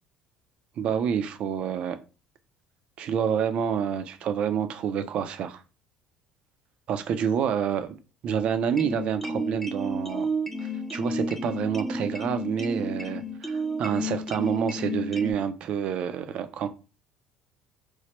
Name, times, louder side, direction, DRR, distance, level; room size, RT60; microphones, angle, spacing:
voice 1, 0.8-2.0 3.0-5.6 6.9-8.0 8.2-10.3 10.9-16.7, right 7 dB, 55° right, 0.4 m, -28 dB
sound 1, 8.7-15.3, equal, 5° left, 0.4 m, -32 dB
3.1 x 2.0 x 2.9 m
supercardioid pair, 90°, 2 cm